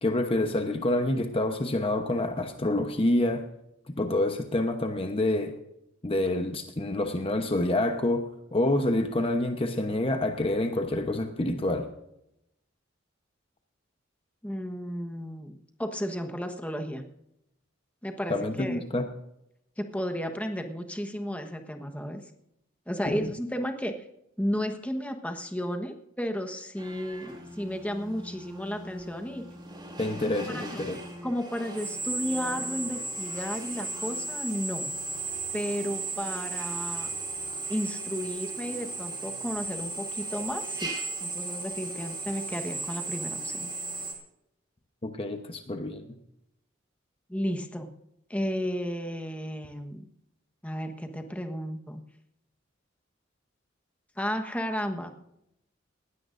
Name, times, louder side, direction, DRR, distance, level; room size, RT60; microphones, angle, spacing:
voice 1, 0.0-3.5 3.9-5.5 6.0-11.9 18.3-19.1 23.1-23.3 30.0-31.0 45.0-46.0, left 1 dB, 30° left, 6 dB, 1.0 m, -27 dB
voice 2, 14.4-17.0 18.0-18.8 19.8-22.2 22.9-23.9 24.4-29.4 30.3-30.8 31.2-34.9 35.5-37.1 37.7-40.9 41.2-43.7 47.3-47.9 48.3-50.0 50.6-52.0 54.2-55.1, equal, 5° left, 5 dB, 1.3 m, -33 dB
Drill, 26.8-44.1, right 3 dB, 25° right, 2.8 m, -36 dB
19.5 x 16.5 x 2.6 m, 0.82 s
head